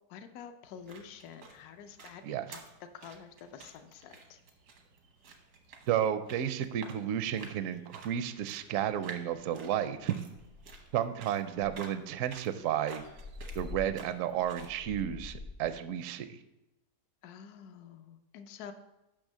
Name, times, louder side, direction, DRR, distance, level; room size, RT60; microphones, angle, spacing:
voice 1, 0.1-2.6 2.9-4.4 17.2-18.7, left 7 dB, 75° left, 8 dB, 1.1 m, -48 dB
sound 1, 0.6-14.8, right 4 dB, 85° right, 1.7 m, -52 dB
voice 2, 5.9-10.1 10.9-13.0 13.5-16.4, right 10 dB, 70° right, 11 dB, 0.8 m, -32 dB
sound 2, 9.4-9.6 9.9-10.0 10.3-11.0 11.6-15.7, left 3 dB, 60° left, 0.6 m, -46 dB
6.3 x 6.0 x 6.1 m, 0.96 s
omnidirectional pair, 1.7 m